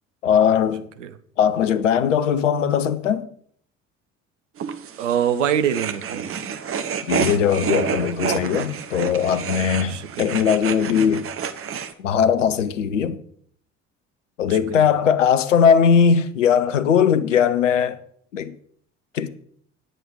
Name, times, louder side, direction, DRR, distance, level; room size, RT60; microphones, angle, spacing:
voice 1, 0.2-0.8 1.4-3.3 7.1-11.2 12.0-13.2 14.4-18.0 18.3-18.5 19.1-19.3, left 7 dB, 80° left, 0.8 m, -19 dB
sound 1, 4.6-11.9, right 7 dB, 35° right, 1.0 m, -29 dB
voice 2, 5.0-6.2 9.9-10.3 14.5-14.8, right 9 dB, 75° right, 0.9 m, -24 dB
9.5 x 7.9 x 6.3 m
figure-of-eight pair, 55°, 37 cm